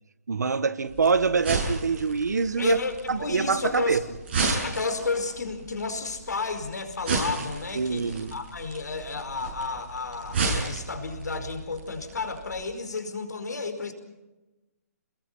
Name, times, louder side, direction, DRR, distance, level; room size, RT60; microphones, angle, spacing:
voice 1, 0.3-2.8 3.1-4.0 7.7-8.3, right 5 dB, 85° right, 1.7 m, -25 dB
sound 1, 0.9-12.6, right 3 dB, 35° right, 7.4 m, -33 dB
voice 2, 2.6-4.0 4.6-13.9, left 4 dB, 90° left, 4.9 m, -32 dB
28.0 x 22.0 x 5.7 m
hypercardioid pair, 170°, 9 cm